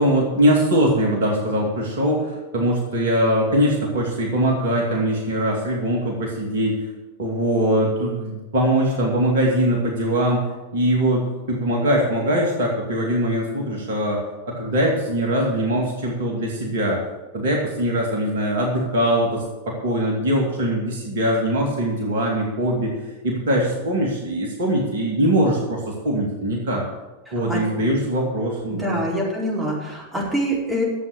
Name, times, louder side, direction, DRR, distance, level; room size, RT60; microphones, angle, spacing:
voice 1, 0.0-6.8 7.2-10.5 10.7-14.2 14.5-17.0 17.3-22.9 23.2-26.8 27.3-29.0, right 1 dB, 60° right, -1 dB, 2.5 m, -22 dB
voice 2, 27.3-27.6 28.7-30.8, equal, 10° right, -5 dB, 4.4 m, -25 dB
12.0 x 7.8 x 6.7 m, 1.1 s
figure-of-eight pair, 90°, 0 cm